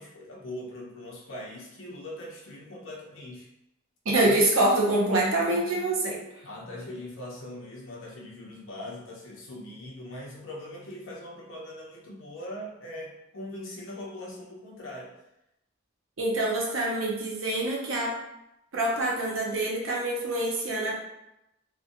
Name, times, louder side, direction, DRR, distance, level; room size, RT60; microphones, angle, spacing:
voice 1, 0.0-3.5 6.4-15.1, left 1 dB, 70° left, -3 dB, 0.7 m, -41 dB
voice 2, 4.0-6.2 16.2-18.1 18.7-20.9, right 1 dB, 75° right, -2 dB, 0.6 m, -25 dB
2.5 x 2.1 x 2.6 m, 0.88 s
head